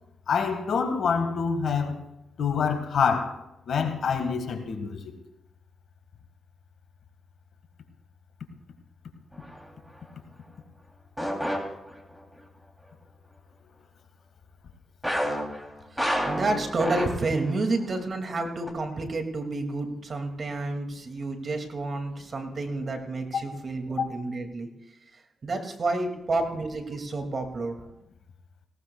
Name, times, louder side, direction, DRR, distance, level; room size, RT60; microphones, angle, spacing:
voice 1, 0.3-2.0 2.4-3.4 3.7-5.1 24.0-24.1, left 6 dB, 70° left, 1.8 m, -26 dB
sound 1, 9.3-9.7 11.2-12.2 15.0-17.5 17.8-18.0 18.7-18.8, equal, 5° right, 3.1 m, -30 dB
voice 2, 15.9-24.7 25.4-27.8, right 2 dB, 50° right, 2.4 m, -30 dB
18.5 x 17.5 x 2.4 m
supercardioid pair, 55°, 0 cm